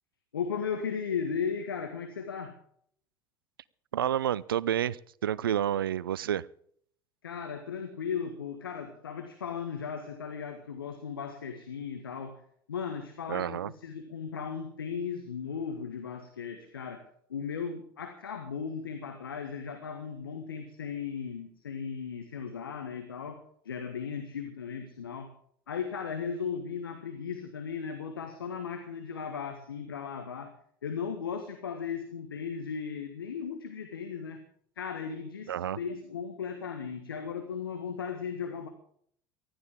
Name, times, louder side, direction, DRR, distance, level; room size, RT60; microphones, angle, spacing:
voice 1, 0.3-2.6 7.2-12.4 12.7-25.3 25.7-30.5 30.8-34.4 34.8-38.7, left 6 dB, 80° left, 6 dB, 1.6 m, -36 dB
voice 2, 3.9-6.5 13.3-13.7 35.5-35.8, right 10 dB, 75° right, 23 dB, 0.5 m, -29 dB
19.5 x 14.0 x 3.7 m, 0.63 s
figure-of-eight pair, 70°, 12 cm